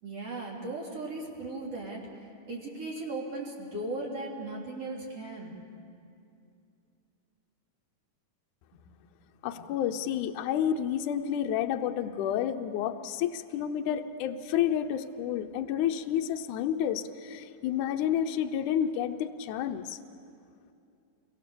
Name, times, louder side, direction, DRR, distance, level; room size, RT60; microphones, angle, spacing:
voice 1, 0.0-2.1 2.5-5.5 8.7-8.8 9.6-9.7, right 2 dB, 50° right, -3 dB, 4.0 m, -37 dB
voice 2, 9.4-20.0, left 9 dB, 75° left, 6 dB, 2.2 m, -30 dB
28.0 x 23.0 x 6.9 m, 2.6 s
omnidirectional pair, 3.7 m